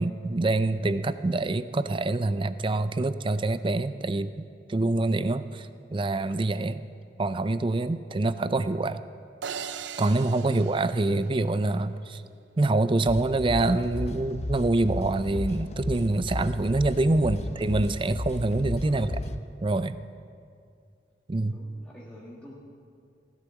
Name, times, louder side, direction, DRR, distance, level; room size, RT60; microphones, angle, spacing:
voice 1, 0.0-4.3 4.7-6.9 7.2-9.0 10.0-12.2 12.6-19.1 19.6-20.0 21.3-21.6, right 2 dB, 30° right, 13 dB, 0.5 m, -26 dB
sound 1, 9.4-11.8, right 7 dB, 85° right, 0.6 m, -39 dB
sound 2, 13.1-19.4, left 2 dB, 40° left, 0.6 m, -34 dB
voice 2, 17.2-17.6 18.8-19.1 21.5-22.5, equal, 5° left, -6 dB, 1.6 m, -46 dB
15.5 x 11.5 x 7.1 m, 2.3 s
head